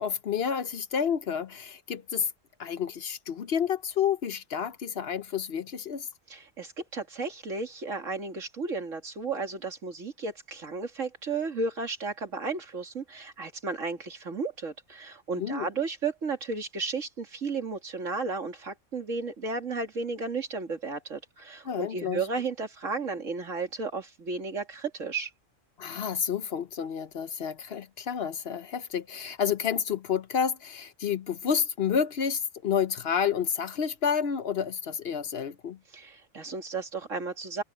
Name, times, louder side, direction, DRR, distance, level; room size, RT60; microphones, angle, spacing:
voice 1, 0.0-2.3 2.6-6.1 15.4-15.7 21.7-22.2 25.8-35.8, left 7 dB, 55° left, 0.9 m, -30 dB
voice 2, 6.3-25.3 35.9-37.6, right 4 dB, 80° right, 2.8 m, -33 dB
omnidirectional pair, 1.3 m